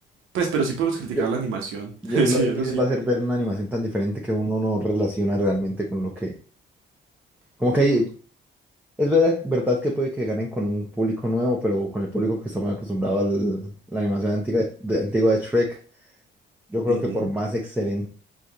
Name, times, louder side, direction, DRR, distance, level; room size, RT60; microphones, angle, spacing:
voice 1, 0.3-2.8 16.9-17.3, right 5 dB, 85° right, 2 dB, 1.0 m, -25 dB
voice 2, 2.0-6.3 7.6-8.1 9.0-15.8 16.7-18.1, equal, 5° right, -2 dB, 0.8 m, -24 dB
4.9 x 2.5 x 2.8 m, 0.39 s
cardioid pair, 90°, 20 cm